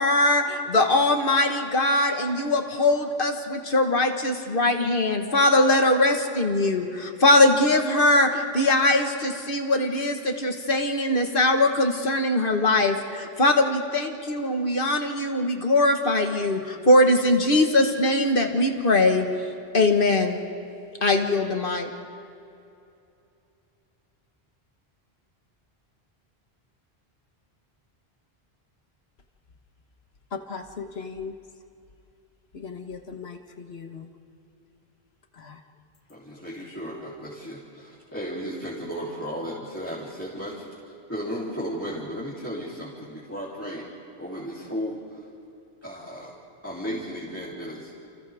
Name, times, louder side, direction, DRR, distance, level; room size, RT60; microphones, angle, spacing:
voice 1, 0.0-19.3 19.7-20.4 21.0-21.9, left 2 dB, 60° left, 1.8 m, -21 dB
voice 2, 30.3-31.4 32.5-34.1 35.4-35.6, left 5 dB, 80° left, 1.6 m, -38 dB
voice 3, 36.1-40.8 41.1-43.9 44.2-45.3 45.8-46.3 46.6-47.9, equal, 15° left, 3.5 m, -34 dB
30.0 x 28.5 x 3.6 m
omnidirectional pair, 1.0 m